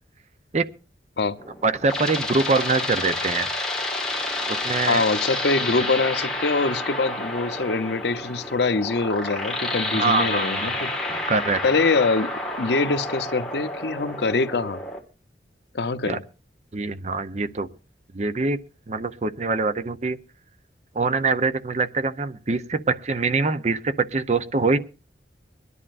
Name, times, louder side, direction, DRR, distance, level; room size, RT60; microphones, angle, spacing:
sound 1, 1.4-15.0, left 2 dB, 5° left, 1.6 m, -29 dB
voice 1, 1.6-3.5 4.5-5.0 9.9-10.7 11.1-11.6 16.1-16.2 16.7-17.7 18.1-18.6 18.9-20.2 20.9-24.8, right 3 dB, 40° right, 0.6 m, -24 dB
voice 2, 4.9-10.9 11.6-12.3 12.6-14.8 15.7-16.2, left 3 dB, 70° left, 0.7 m, -24 dB
23.5 x 11.0 x 2.5 m
head